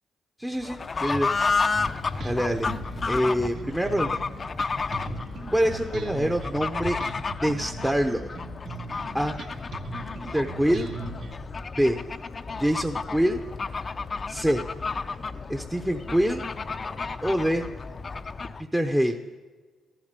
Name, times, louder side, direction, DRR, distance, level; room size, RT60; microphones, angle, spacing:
voice 1, 0.4-1.3 2.2-2.7 3.1-4.1 5.5-7.0 7.4-8.2 9.1-9.4 10.3-10.9 11.8-12.0 12.6-13.4 14.3-14.6 15.5-16.4 17.2-17.7 18.6-19.2, equal, 5° right, 4 dB, 0.8 m, -25 dB
Fowl / Bird, 0.6-18.7, left 4 dB, 35° left, 0.6 m, -32 dB
Bass guitar, 1.7-11.3, right 3 dB, 70° right, 2.2 m, -39 dB
14.0 x 12.0 x 6.8 m, 1.4 s
cardioid pair, 90°, 0 cm